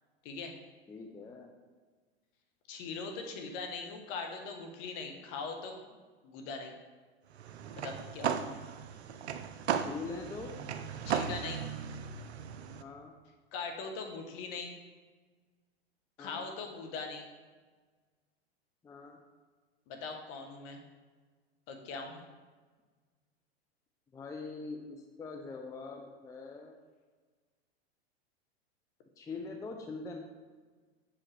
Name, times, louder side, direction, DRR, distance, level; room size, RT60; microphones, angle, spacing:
voice 1, 0.2-0.5 2.7-5.7 6.2-6.7 7.7-8.6 11.0-11.6 13.5-14.7 16.2-17.3 19.9-20.8 21.7-22.3, left 4 dB, 50° left, 4 dB, 1.2 m, -41 dB
voice 2, 0.9-1.5 9.7-10.6 12.8-13.1 16.2-16.6 18.8-19.2 24.1-26.8 29.2-30.2, left 4 dB, 10° left, 3 dB, 0.5 m, -43 dB
sound 1, 7.3-12.8, right 7 dB, 90° right, 0.5 m, -36 dB
7.0 x 4.9 x 3.3 m, 1.4 s
hypercardioid pair, 105°, 32 cm